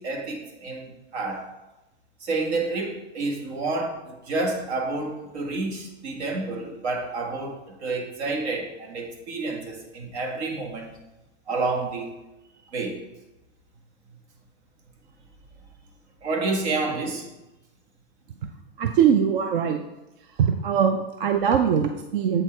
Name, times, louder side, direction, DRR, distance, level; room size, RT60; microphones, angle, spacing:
voice 1, 0.0-1.5 2.2-10.9 11.5-12.1 12.7-13.0 16.2-17.3, right 3 dB, 75° right, 2 dB, 1.8 m, -29 dB
voice 2, 18.8-19.8 20.2-22.4, right 8 dB, 50° right, 7 dB, 0.5 m, -22 dB
7.7 x 4.6 x 4.4 m, 1.0 s
supercardioid pair, 170°, 33 cm